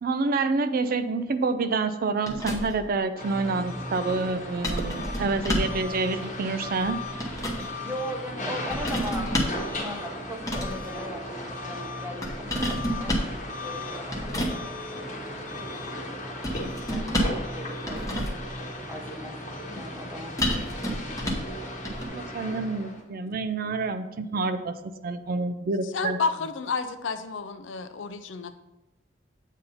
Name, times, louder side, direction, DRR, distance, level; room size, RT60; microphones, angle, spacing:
voice 1, 0.0-7.0 22.0-24.7 25.0-26.2, right 3 dB, 50° right, 10 dB, 0.4 m, -28 dB
sound 1, 2.3-2.9 4.6-5.8 6.8-7.7 8.7-9.7 10.4-10.9 12.2-13.4 14.1-14.6 16.4-17.5 17.8-18.5 20.4-21.5 21.8-22.1, equal, 20° left, 1.0 m, -29 dB
sound 2, 3.2-23.0, left 1 dB, 40° left, 1.2 m, -36 dB
voice 2, 7.8-16.0 16.6-18.4 18.9-19.4 19.7-20.6, equal, 10° right, 3 dB, 0.7 m, -39 dB
voice 3, 25.8-28.6, left 4 dB, 75° left, 10 dB, 0.5 m, -31 dB
8.0 x 2.8 x 5.4 m, 1.0 s
head